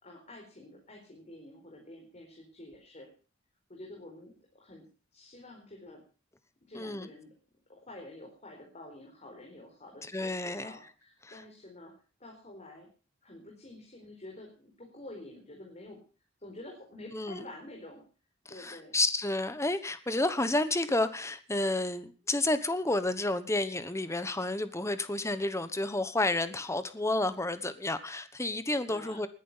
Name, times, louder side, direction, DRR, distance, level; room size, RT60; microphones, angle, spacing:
voice 1, 0.0-3.1 3.7-4.8 5.1-6.0 6.7-7.3 7.7-11.9 12.2-12.9 13.2-16.0 16.4-18.0 18.5-19.0 28.9-29.3, left 1 dB, 35° left, 0 dB, 4.4 m, -48 dB
voice 2, 6.7-7.1 10.1-10.7 11.3-11.4 17.1-17.4 18.5-29.3, left 2 dB, 15° left, 12 dB, 1.2 m, -30 dB
20.5 x 11.0 x 5.6 m, 0.37 s
head